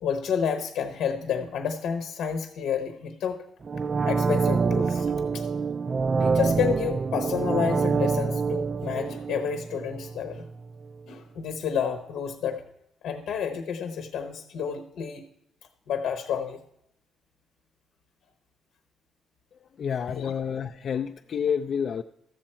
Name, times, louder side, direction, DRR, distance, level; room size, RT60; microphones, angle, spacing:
voice 1, 0.0-3.4 4.0-5.5 6.2-10.5 11.1-12.6 13.0-15.2 15.9-16.6 20.0-20.3, left 7 dB, 80° left, 7 dB, 0.9 m, -30 dB
sound 1, 3.6-10.5 10.8-10.9, right 5 dB, 35° right, 0.3 m, -26 dB
voice 2, 19.5-22.0, left 7 dB, 55° left, 6 dB, 0.4 m, -29 dB
13.5 x 7.7 x 4.4 m, 0.77 s
cardioid pair, 90°, 0 cm